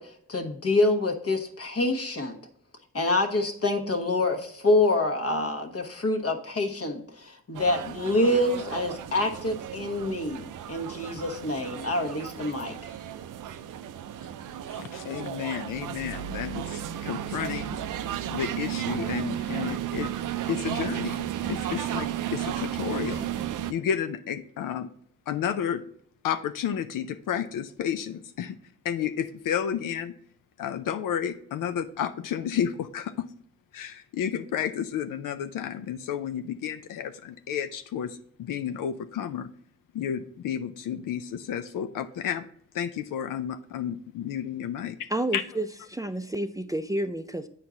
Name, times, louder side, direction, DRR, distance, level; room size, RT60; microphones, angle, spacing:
voice 1, 0.0-2.4 2.9-12.9, left 2 dB, 50° left, 5 dB, 1.1 m, -26 dB
sound 1, 7.5-23.7, right 11 dB, 75° right, 0.5 m, -34 dB
voice 2, 14.7-17.8 18.3-20.1 20.5-23.3 23.7-24.9 25.3-25.8 26.2-28.6 28.8-30.1 30.6-33.1 33.7-39.5 39.9-42.5 42.7-45.0 45.3-45.4, left 9 dB, 90° left, 9 dB, 0.5 m, -31 dB
voice 3, 45.1-47.5, right 1 dB, 10° right, 9 dB, 0.4 m, -30 dB
8.4 x 4.4 x 3.7 m, 0.65 s
cardioid pair, 60°, 31 cm